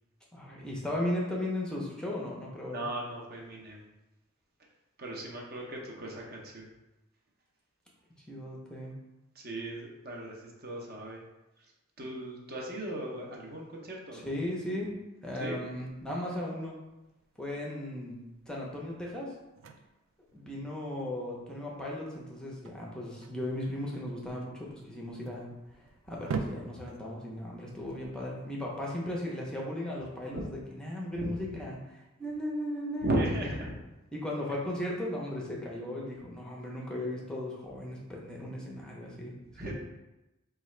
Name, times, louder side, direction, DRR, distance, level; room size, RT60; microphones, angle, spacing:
voice 1, 0.3-2.8 8.3-8.9 12.0-12.1 14.1-14.9 15.2-16.8 17.4-19.3 20.3-33.2 34.1-39.7, left 1 dB, 5° left, -3 dB, 0.6 m, -36 dB
voice 2, 2.7-3.9 5.0-6.7 9.3-11.2 11.6-11.7 12.0-14.3 15.4-15.6 30.3-30.4 31.2-31.3 33.0-33.7 39.6-39.7, right 1 dB, 45° right, -1 dB, 0.8 m, -36 dB
sound 1, 15.7-28.9, right 5 dB, 65° right, 0.3 m, -45 dB
4.6 x 2.4 x 3.2 m, 0.99 s
head